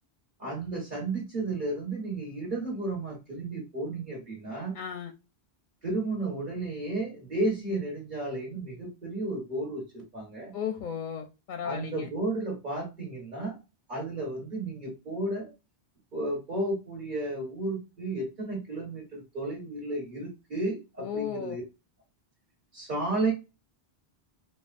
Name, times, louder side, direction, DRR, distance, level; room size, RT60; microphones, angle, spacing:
voice 1, 0.4-4.7 5.8-10.5 11.6-13.6 13.9-15.5 16.1-21.6 22.7-23.3, right 2 dB, 50° right, 1.7 m, -33 dB
voice 2, 4.7-5.1 10.5-12.1 21.0-21.6, left 8 dB, 60° left, 0.6 m, -35 dB
4.7 x 2.3 x 2.4 m
omnidirectional pair, 1.1 m